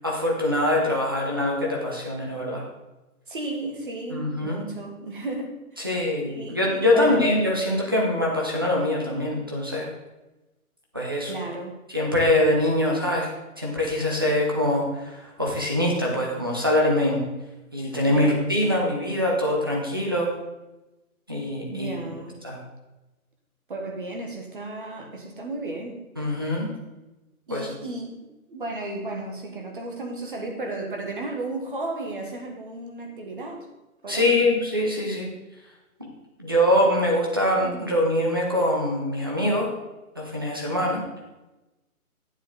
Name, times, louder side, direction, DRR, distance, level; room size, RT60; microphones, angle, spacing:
voice 1, 0.0-2.6 4.1-4.6 5.8-9.9 10.9-11.3 11.9-13.3 13.6-17.2 17.7-20.3 21.3-21.9 22.4-22.6 26.2-26.7 27.5-27.7 34.1-35.3 36.0-36.1 36.4-39.7 40.1-41.0, left 1 dB, 15° right, -2 dB, 0.7 m, -23 dB
voice 2, 3.3-5.9 6.2-7.3 11.2-11.7 18.1-18.5 21.7-22.4 23.7-26.0 27.5-33.7 34.0-34.5, right 2 dB, 35° right, 2 dB, 1.5 m, -34 dB
11.5 x 7.2 x 3.9 m, 1.0 s
hypercardioid pair, 170°, 44 cm